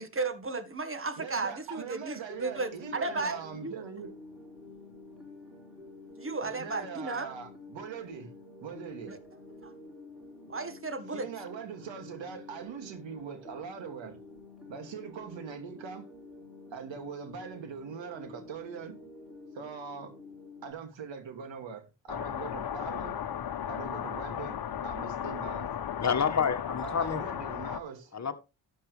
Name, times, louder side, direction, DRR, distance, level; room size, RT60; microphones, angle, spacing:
voice 1, 0.0-3.7 6.2-7.3 9.1-9.2 9.6-9.8 10.5-11.3, right 3 dB, 30° right, 1.8 m, -34 dB
voice 2, 1.2-4.2 6.4-8.3 8.6-9.2 11.1-14.2 14.7-16.1 16.7-19.0 19.5-20.1 20.6-23.2 23.7-25.7 26.8-28.1, right 6 dB, 80° right, 2.6 m, -42 dB
sound 1, 2.3-20.7, left 2 dB, ahead, 6.1 m, -49 dB
sound 2, 22.1-27.8, left 9 dB, 55° left, 1.1 m, -35 dB
voice 3, 26.0-27.3 28.1-28.3, left 6 dB, 35° left, 1.8 m, -28 dB
13.0 x 8.3 x 3.4 m
cardioid pair, 75°, 45 cm